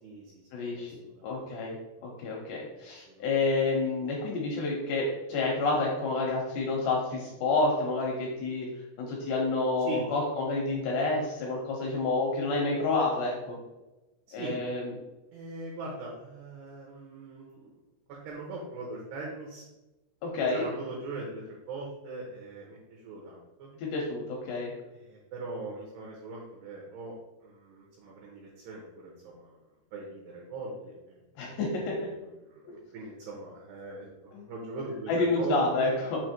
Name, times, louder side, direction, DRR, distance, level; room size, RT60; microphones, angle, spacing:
voice 1, 0.0-0.4 0.7-1.4 2.9-3.4 9.9-10.0 14.4-14.6 15.3-17.8 18.1-19.7 20.5-23.7 24.9-27.1 27.4-29.6 29.9-31.5 31.9-35.9, right 3 dB, 80° right, -3 dB, 2.4 m, -41 dB
voice 2, 0.5-0.9 1.2-8.7 9.0-13.6 14.3-14.9 20.2-20.7 23.8-24.7 31.4-32.0 32.6-32.7 34.3-34.5 35.1-36.2, left 3 dB, 80° left, -2 dB, 2.5 m, -29 dB
7.5 x 2.8 x 4.5 m, 1.1 s
omnidirectional pair, 6.0 m